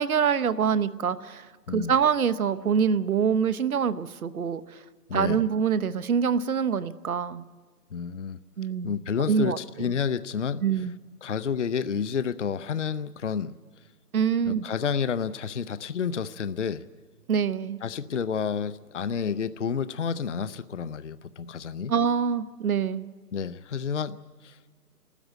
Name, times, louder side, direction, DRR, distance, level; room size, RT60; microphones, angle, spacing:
voice 1, 0.0-4.6 5.1-7.4 8.6-8.9 9.3-9.6 10.6-10.9 14.1-14.7 17.3-17.8 21.9-23.1, right 7 dB, 65° right, 15 dB, 0.9 m, -25 dB
voice 2, 5.1-5.4 7.9-8.4 8.8-10.6 11.2-13.6 14.5-16.8 17.8-21.9 23.3-24.6, left 6 dB, 50° left, 15 dB, 0.5 m, -30 dB
26.0 x 13.5 x 8.9 m, 1.5 s
hypercardioid pair, 180°, 46 cm